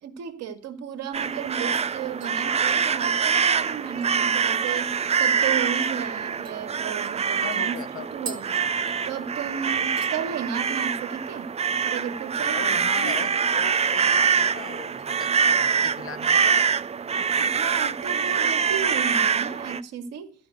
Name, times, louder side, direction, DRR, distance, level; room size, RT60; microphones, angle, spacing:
voice 1, 0.0-8.7 9.0-11.5 11.8-13.2 17.4-20.3, right 7 dB, 55° right, 2.1 m, -34 dB
sound 1, 1.1-19.8, right 6 dB, 20° right, 0.6 m, -24 dB
sound 2, 1.1-1.2 1.6-1.9 2.2-5.0 5.4-5.5 5.8-6.0 6.4-9.4 9.7-10.2 10.5-10.9 11.2-11.3 13.4-14.0 14.4-15.1 15.5-15.8 16.3-17.2 17.6-17.7, right 5 dB, 90° right, 1.6 m, -46 dB
voice 2, 7.4-8.4 12.4-16.7, left 8 dB, 45° left, 1.4 m, -39 dB
14.0 x 5.9 x 7.9 m
hypercardioid pair, 60°, 30 cm